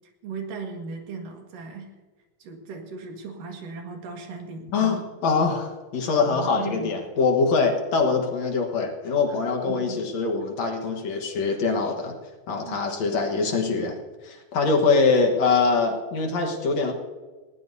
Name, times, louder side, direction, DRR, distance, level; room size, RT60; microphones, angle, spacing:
voice 1, 0.2-1.9 2.4-5.0 6.3-7.0 9.7-10.0 12.7-12.8, right 4 dB, 75° right, 3 dB, 3.4 m, -37 dB
voice 2, 4.7-12.2 12.5-14.0 14.2-16.9, left 4 dB, 60° left, 3 dB, 2.4 m, -23 dB
20.0 x 17.0 x 2.7 m, 1.3 s
omnidirectional pair, 3.9 m